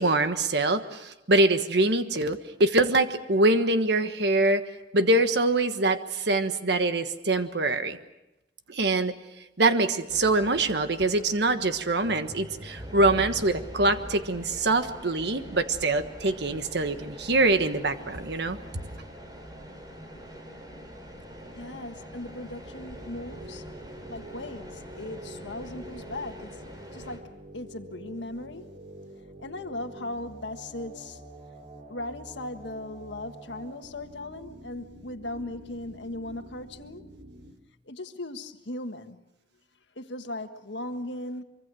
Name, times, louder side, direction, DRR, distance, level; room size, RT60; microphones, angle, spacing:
voice 1, 0.0-4.6 4.9-8.0 8.7-9.1 9.6-18.6, right 2 dB, 70° right, 1.4 m, -24 dB
sound 1, 10.1-27.2, equal, 25° right, 3.7 m, -43 dB
voice 2, 21.5-23.6 24.1-26.6 26.9-28.8 29.4-31.2 31.9-37.1 37.8-39.2 39.9-41.4, left 2 dB, 85° left, 1.6 m, -38 dB
sound 2, 22.8-37.5, right 1 dB, 45° right, 3.3 m, -47 dB
24.5 x 24.5 x 6.3 m
head